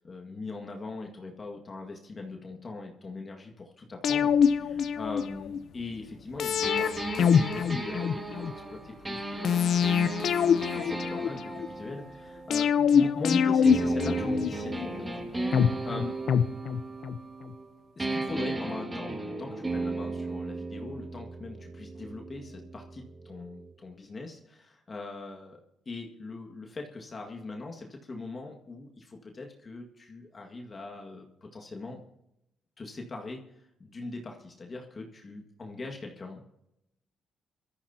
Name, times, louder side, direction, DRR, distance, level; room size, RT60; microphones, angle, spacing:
voice 1, 0.0-15.2 15.6-16.2 18.0-32.0 32.8-36.4, left 3 dB, 35° left, 2 dB, 1.9 m, -41 dB
sound 1, 4.0-5.6 6.4-8.5 9.4-11.7 12.5-14.9 15.5-17.2 17.5-17.6, left 7 dB, 65° left, 0.7 m, -25 dB
sound 2, 6.6-13.2 13.6-17.7 18.0-23.7, right 2 dB, 20° right, 2.2 m, -35 dB
22.0 x 13.5 x 2.9 m, 0.85 s
cardioid pair, 90°, 0 cm